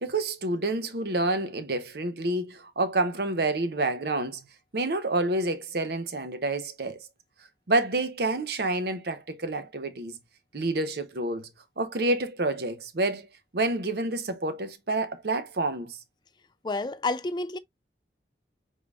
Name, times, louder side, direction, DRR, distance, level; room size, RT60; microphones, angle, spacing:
voice 1, 0.0-4.4 4.7-7.1 7.7-10.2 10.5-11.5 11.8-13.3 13.5-16.0, right 2 dB, 65° right, 0.7 m, -28 dB
voice 2, 16.6-17.6, left 2 dB, 25° left, 0.4 m, -29 dB
5.0 x 3.9 x 2.4 m
head